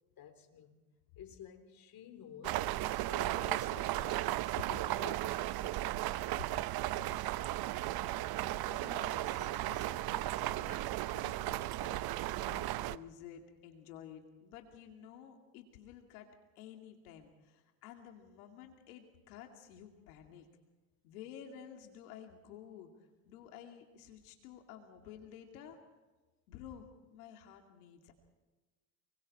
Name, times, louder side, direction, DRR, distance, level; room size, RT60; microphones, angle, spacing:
voice 1, 0.1-0.8 1.2-7.5, left 8 dB, 50° left, 3.6 m, -53 dB
sound 1, 2.4-13.0, right 15 dB, 55° right, 0.8 m, -35 dB
voice 2, 8.4-16.3 16.6-20.5 21.0-22.9 23.3-25.8 26.5-28.1, left 9 dB, 90° left, 2.5 m, -52 dB
30.0 x 22.5 x 4.3 m
supercardioid pair, 85°, 44 cm